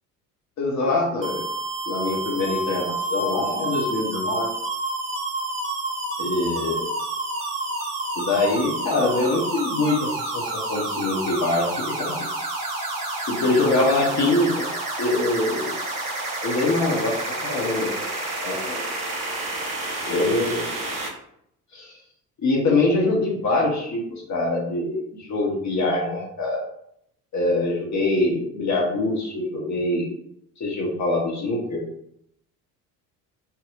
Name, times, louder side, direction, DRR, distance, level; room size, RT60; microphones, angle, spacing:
voice 1, 0.6-1.4 1.9-4.5 6.2-6.9 8.1-12.2 13.3-14.7 15.0-15.7 16.4-18.1 18.4-18.8 20.0-20.7 21.7-21.9 22.4-26.6 27.3-30.1 30.6-31.8, left 2 dB, 35° left, -2 dB, 1.3 m, -24 dB
sound 1, 1.2-21.1, right 2 dB, 40° right, 1.5 m, -29 dB
4.2 x 4.1 x 2.5 m, 0.72 s
figure-of-eight pair, 55°, 49 cm